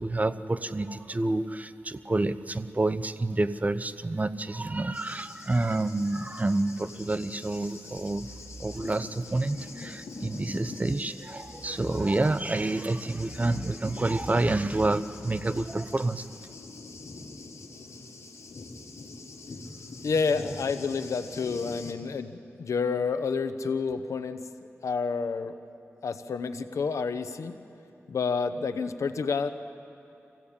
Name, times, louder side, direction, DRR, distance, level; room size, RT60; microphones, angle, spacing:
voice 1, 0.0-8.3 8.6-16.3, right 2 dB, 30° right, 12 dB, 0.8 m, -28 dB
Thunder, 4.9-21.9, left 3 dB, 70° left, 2.1 m, -45 dB
voice 2, 20.0-24.4 24.8-25.5 26.0-27.6 28.1-29.5, left 5 dB, 85° left, 11 dB, 0.9 m, -29 dB
25.0 x 16.5 x 8.7 m, 2.7 s
cardioid pair, 60°, 5 cm